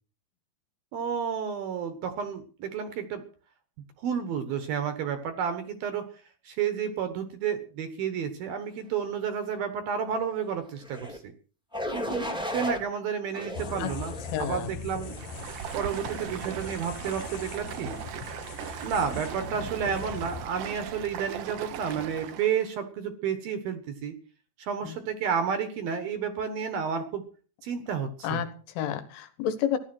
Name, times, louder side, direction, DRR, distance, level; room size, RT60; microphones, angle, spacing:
voice 1, 0.9-3.2 4.0-6.1 6.4-11.2 11.9-14.1 14.4-15.1 15.7-18.0 18.8-24.1 24.6-27.2 27.6-28.4, right 7 dB, 65° right, 9 dB, 2.5 m, -31 dB
sound 1, 10.8-11.2 11.7-12.8 13.3-14.4 15.0-15.3, left 1 dB, 5° right, 0.8 m, -35 dB
sound 2, 13.5-20.5, left 6 dB, 65° left, 2.4 m, -41 dB
voice 2, 14.3-14.7 24.9-25.0 28.2-29.8, left 9 dB, 85° left, 10 dB, 4.0 m, -30 dB
Stream, 15.0-22.6, right 9 dB, 90° right, 1.8 m, -38 dB
15.5 x 11.0 x 6.2 m, 0.41 s
omnidirectional pair, 5.5 m